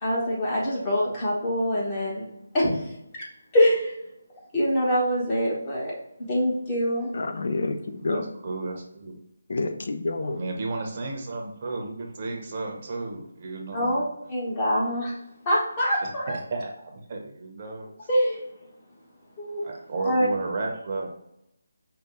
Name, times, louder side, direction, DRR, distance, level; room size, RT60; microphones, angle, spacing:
voice 1, 0.0-2.3 2.5-2.9 3.5-3.9 4.5-7.1 13.7-14.0 14.3-15.1 15.4-16.3 18.1-18.4 19.4-19.6 20.0-20.3, equal, 25° left, -5 dB, 1.4 m, -24 dB
voice 2, 7.1-8.2 9.5-10.4, left 3 dB, 60° left, 8 dB, 0.4 m, -28 dB
voice 3, 7.8-9.2 10.2-14.0 16.0-17.9 19.6-21.1, right 3 dB, 40° right, 1 dB, 0.7 m, -33 dB
5.0 x 2.3 x 3.9 m, 0.82 s
figure-of-eight pair, 155°, 0 cm